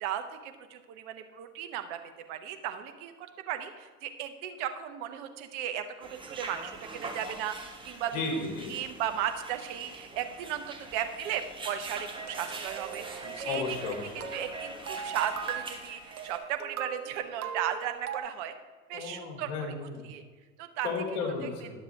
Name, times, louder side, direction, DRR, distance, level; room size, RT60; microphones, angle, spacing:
voice 1, 0.0-13.8 14.3-18.5 18.9-19.7 20.0-20.2 20.6-20.9 21.6-21.7, right 10 dB, 55° right, 7 dB, 1.1 m, -36 dB
sound 1, 6.0-16.4, right 3 dB, 10° right, 1.3 m, -43 dB
voice 2, 8.1-8.7 13.4-14.3 18.9-20.0 20.8-21.7, left 4 dB, 60° left, 0 dB, 3.0 m, -34 dB
sound 2, 11.8-18.2, right 7 dB, 85° right, 0.7 m, -40 dB
11.0 x 7.3 x 3.6 m, 1.4 s
hypercardioid pair, 85°, 43 cm